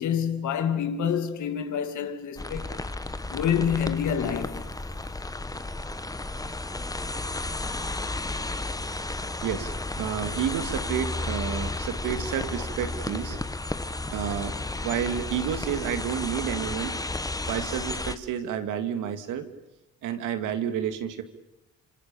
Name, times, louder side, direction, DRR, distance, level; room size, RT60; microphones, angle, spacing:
voice 1, 0.0-2.8 3.3-4.6, left 8 dB, 70° left, 2.6 m, -27 dB
sound 1, 2.4-18.1, left 2 dB, 10° left, 1.3 m, -33 dB
voice 2, 9.4-13.4 14.1-17.0 17.5-19.5 20.0-21.2, right 9 dB, 90° right, 2.3 m, -30 dB
27.0 x 26.5 x 7.1 m
cardioid pair, 90°, 30 cm